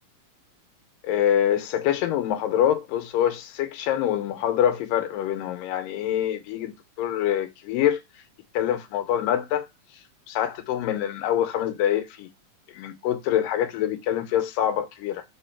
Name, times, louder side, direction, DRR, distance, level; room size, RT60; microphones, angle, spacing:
voice 1, 1.0-8.0 8.5-9.7 10.3-12.3 12.7-15.2, left 11 dB, 85° left, 2.5 m, -25 dB
4.8 x 3.8 x 5.6 m
omnidirectional pair, 3.9 m